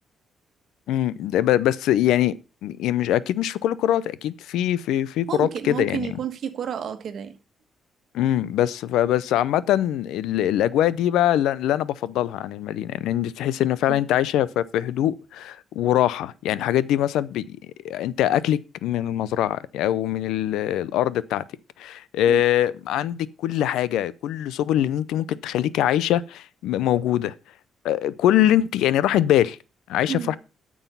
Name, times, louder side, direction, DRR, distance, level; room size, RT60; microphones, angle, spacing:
voice 1, 0.9-2.3 2.6-6.2 8.1-17.6 17.8-21.4 21.8-27.3 27.8-29.6 29.9-30.4, left 12 dB, 85° left, 0.5 m, -23 dB
voice 2, 5.3-7.4 13.9-14.0 22.3-22.4 30.1-30.4, right 8 dB, 60° right, 1.3 m, -31 dB
9.1 x 6.2 x 5.5 m
cardioid pair, 90°, 0 cm